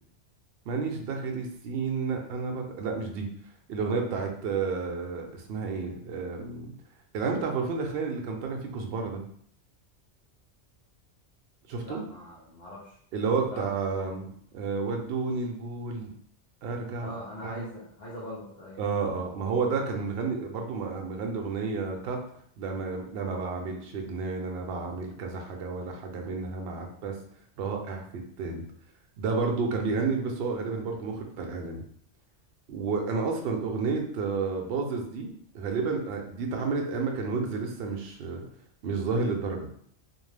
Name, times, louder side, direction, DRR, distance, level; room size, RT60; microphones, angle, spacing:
voice 1, 0.7-3.3 3.7-6.7 7.1-9.2 11.7-12.0 13.1-16.1 16.6-17.1 17.4-17.6 18.8-22.2 22.6-27.2 27.6-28.0 28.4-28.6 29.2-31.8 32.7-35.3 35.5-38.4 38.8-39.7, right 4 dB, 65° right, 2 dB, 0.7 m, -31 dB
voice 2, 11.8-13.0 13.5-13.7 17.0-18.8, left 1 dB, 65° left, -6 dB, 0.9 m, -42 dB
2.4 x 2.2 x 3.2 m, 0.63 s
omnidirectional pair, 1.2 m